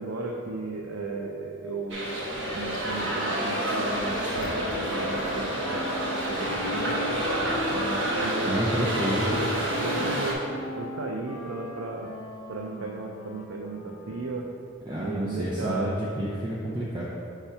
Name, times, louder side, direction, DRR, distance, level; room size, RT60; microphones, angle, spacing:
voice 1, 0.0-2.1 2.5-7.1 7.6-9.5 9.8-10.4 10.7-12.1 12.5-14.5 15.0-15.9, right 3 dB, 85° right, 1 dB, 0.5 m, -35 dB
sound 1, 0.9-8.9, equal, 5° left, 1.5 m, -41 dB
sound 2, 1.9-10.3, right 1 dB, 60° right, 1.1 m, -29 dB
Wind instrument woodwind instrument, 2.5-14.6, left 2 dB, 75° left, 0.6 m, -39 dB
voice 2, 8.5-9.4 14.9-17.1, right 1 dB, 20° right, -5 dB, 0.5 m, -29 dB
5.7 x 3.5 x 5.5 m, 2.6 s
head